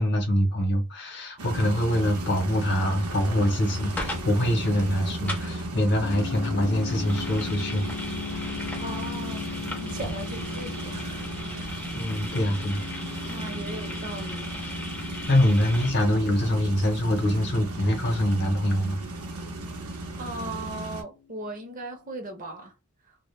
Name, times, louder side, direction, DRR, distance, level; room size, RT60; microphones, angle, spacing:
voice 1, 0.0-7.9 8.3-8.6 11.9-12.8 15.3-19.0, equal, 50° left, 0.7 m, -24 dB
sound 1, 1.4-21.0, right 1 dB, 80° right, 0.7 m, -35 dB
sound 2, 4.0-15.9, left 1 dB, 5° left, 0.5 m, -39 dB
sound 3, 6.0-20.8, left 6 dB, 85° left, 0.4 m, -40 dB
voice 2, 8.8-12.1 13.2-14.6 16.0-16.2 20.2-22.7, right 2 dB, 35° right, 0.6 m, -38 dB
2.1 x 2.0 x 3.0 m
head